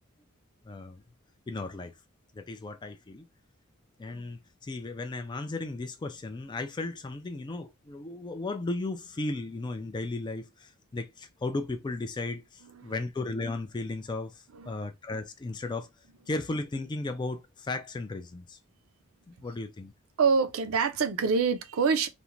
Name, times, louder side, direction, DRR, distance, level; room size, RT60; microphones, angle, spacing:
voice 1, 0.7-1.0 1.5-1.9 2.3-3.2 4.0-15.9 16.3-18.6 19.3-19.9, left 2 dB, 20° left, 0.3 m, -35 dB
voice 2, 20.2-22.1, right 5 dB, 75° right, 0.5 m, -26 dB
2.5 x 2.1 x 2.9 m
head